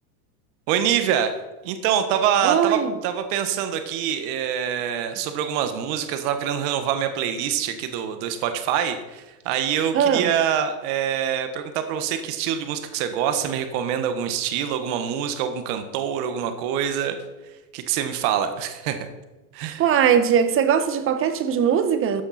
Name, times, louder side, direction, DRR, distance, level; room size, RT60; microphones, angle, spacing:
voice 1, 0.7-1.3 1.6-17.1 17.7-19.1 19.5-19.8, right 9 dB, 50° right, 1.6 m, -25 dB
voice 2, 2.4-2.9 9.9-10.3 19.8-22.2, right 8 dB, 30° right, 1.1 m, -20 dB
14.0 x 8.9 x 4.3 m
supercardioid pair, 130°, 46 cm